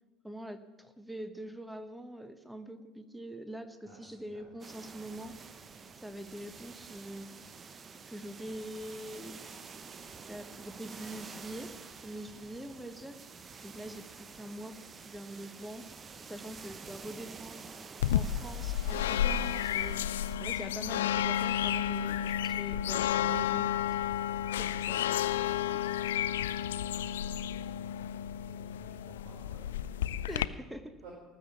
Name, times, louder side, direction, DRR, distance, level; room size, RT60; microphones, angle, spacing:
voice 1, 0.2-5.3 6.0-7.3 8.1-9.4 10.2-13.2 13.6-15.9 16.2-17.7 18.1-20.1 20.4-23.8 24.6-25.8 30.3-30.9, right 1 dB, 5° right, 10 dB, 1.2 m, -44 dB
voice 2, 3.8-4.5 13.8-14.0 26.9-27.4 27.8-30.5 31.0-31.1, right 3 dB, 60° right, -5 dB, 4.9 m, -56 dB
sound 1, 4.6-20.4, right 5 dB, 30° right, 0.8 m, -49 dB
sound 2, 18.0-30.5, left 10 dB, 75° left, 0.3 m, -31 dB
18.5 x 7.1 x 7.3 m, 1.3 s
figure-of-eight pair, 65°, 0 cm